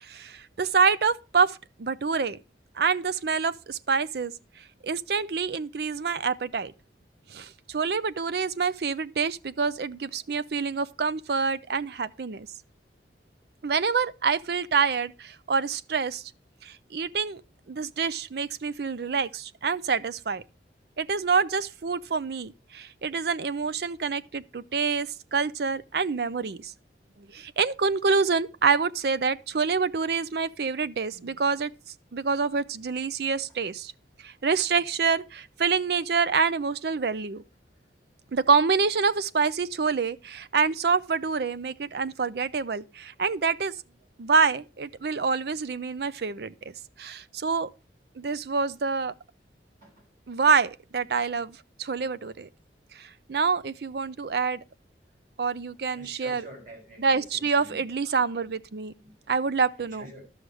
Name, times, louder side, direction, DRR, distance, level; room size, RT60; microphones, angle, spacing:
voice 1, 0.0-2.4 2.8-4.3 4.8-6.7 7.3-12.5 13.6-16.3 16.6-17.4 17.7-20.4 21.0-26.7 27.2-31.7 32.1-33.9 34.2-37.4 38.3-43.7 44.2-46.5 47.0-47.7 48.2-49.1 50.3-52.5 53.0-54.6 55.4-56.4 57.0-58.9 59.3-60.1, right 5 dB, 60° right, 0.5 m, -26 dB
voice 2, 55.9-57.8 59.0-59.1 59.9-60.2, equal, 45° right, 5.3 m, -47 dB
11.5 x 6.4 x 4.7 m
head